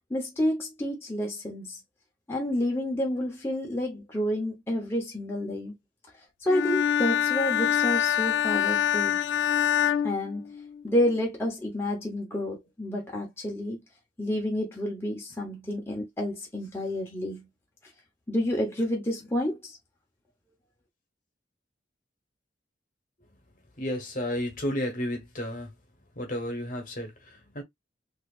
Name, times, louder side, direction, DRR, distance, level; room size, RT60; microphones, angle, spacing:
voice 1, 0.1-1.8 2.3-5.7 6.4-9.2 10.0-10.5 10.8-13.8 14.2-17.5 18.3-19.8, left 1 dB, 15° left, 0.8 m, -29 dB
Bowed string instrument, 6.5-11.0, left 10 dB, 75° left, 0.3 m, -25 dB
voice 2, 23.8-25.7 26.2-27.6, equal, 45° left, 1.2 m, -32 dB
4.0 x 2.6 x 2.4 m
head